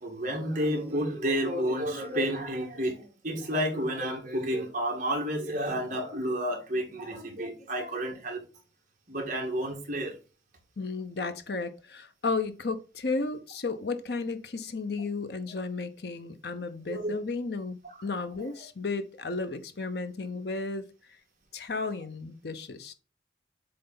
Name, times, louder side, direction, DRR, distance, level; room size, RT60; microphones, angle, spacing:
voice 1, 0.0-8.4 9.1-10.1 16.9-17.2 17.8-17.9 18.4-18.5, equal, 45° right, 2.1 m, -30 dB
voice 2, 10.8-20.8 21.5-22.9, left 3 dB, 60° left, 0.8 m, -33 dB
7.8 x 3.3 x 3.9 m
head